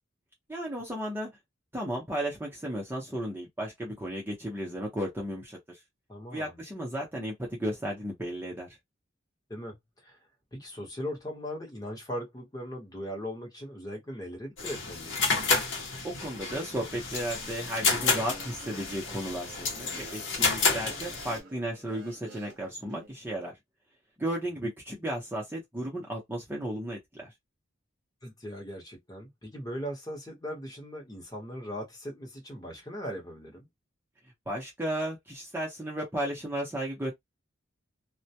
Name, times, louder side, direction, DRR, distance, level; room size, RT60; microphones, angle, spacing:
voice 1, 0.5-1.3 1.7-5.8 6.3-8.7 16.0-23.5 24.2-27.3 34.5-37.1, right 1 dB, 10° right, 0.6 m, -34 dB
voice 2, 6.1-6.6 9.5-10.2 10.5-15.2 28.2-33.7, equal, 20° left, 0.9 m, -39 dB
sound 1, 14.6-21.4, left 4 dB, 65° left, 0.8 m, -30 dB
Guitar, 17.8-23.1, right 2 dB, 60° right, 0.9 m, -51 dB
2.2 x 2.1 x 2.7 m
head